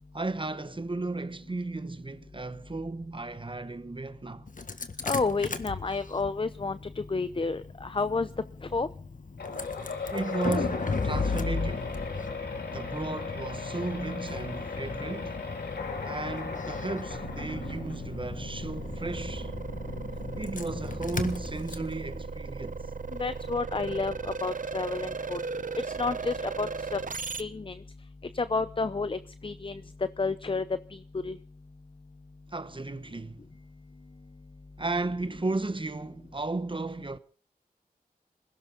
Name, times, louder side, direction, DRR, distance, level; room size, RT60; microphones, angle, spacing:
voice 1, 0.1-4.5 10.1-11.9 12.7-15.4 16.0-19.5 20.4-22.9 32.5-33.4 34.8-37.2, right 2 dB, 30° right, 1.1 m, -34 dB
Engine starting, 4.5-23.4, left 4 dB, 55° left, 1.6 m, -37 dB
voice 2, 5.0-8.3 8.7-8.9 23.2-25.4 25.8-27.0 27.4-27.7 28.3-29.8 30.2-30.6 31.2-31.4, left 3 dB, 35° left, 0.7 m, -30 dB
sound 1, 9.4-18.2, left 4 dB, 85° left, 2.9 m, -37 dB
sound 2, 17.1-27.4, right 4 dB, 55° right, 0.9 m, -37 dB
20.5 x 17.0 x 4.0 m
cardioid pair, 45°, 16 cm